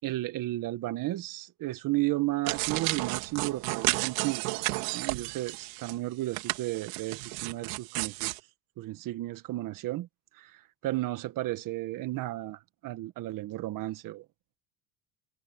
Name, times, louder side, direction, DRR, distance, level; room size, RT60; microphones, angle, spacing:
voice 1, 0.0-8.3 8.8-10.1 10.3-14.2, right 17 dB, 55° right, 1.7 m, -33 dB
sound 1, 2.5-6.0 6.3-8.4, right 25 dB, 80° right, 3.5 m, -32 dB
supercardioid pair, 105°, 39 cm